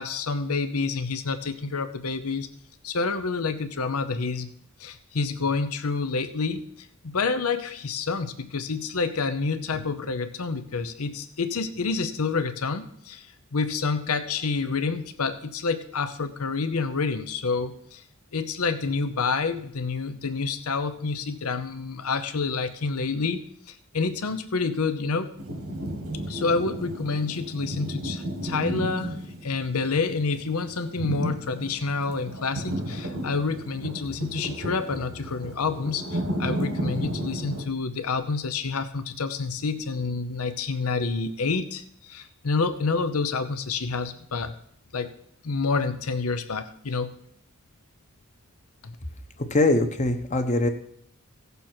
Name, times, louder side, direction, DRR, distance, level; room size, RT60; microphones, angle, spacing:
voice 1, 0.0-2.5 2.8-4.5 4.8-18.0 18.3-23.4 23.7-25.3 26.3-29.2 29.4-44.5 44.9-45.1 45.4-47.1 48.8-49.0, left 4 dB, 80° left, 11 dB, 0.8 m, -28 dB
sound 1, 25.4-37.6, right 1 dB, 85° right, 1.8 m, -33 dB
voice 2, 49.5-50.7, left 2 dB, 30° left, 7 dB, 1.0 m, -22 dB
16.5 x 6.8 x 4.5 m, 0.67 s
head